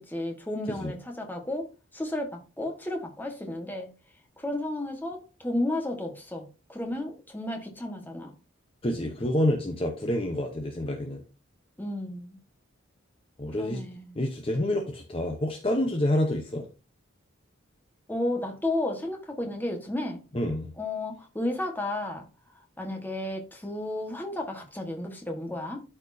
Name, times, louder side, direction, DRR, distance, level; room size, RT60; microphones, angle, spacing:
voice 1, 0.0-3.9 4.4-6.4 6.7-8.3 11.8-12.4 13.6-14.2 18.1-20.2 20.8-22.2 22.8-25.8, left 1 dB, 10° left, 1.4 m, -33 dB
voice 2, 8.8-11.2 13.4-13.8 14.2-16.7 20.3-20.7, left 1 dB, 25° left, 0.8 m, -28 dB
12.5 x 4.5 x 2.7 m
head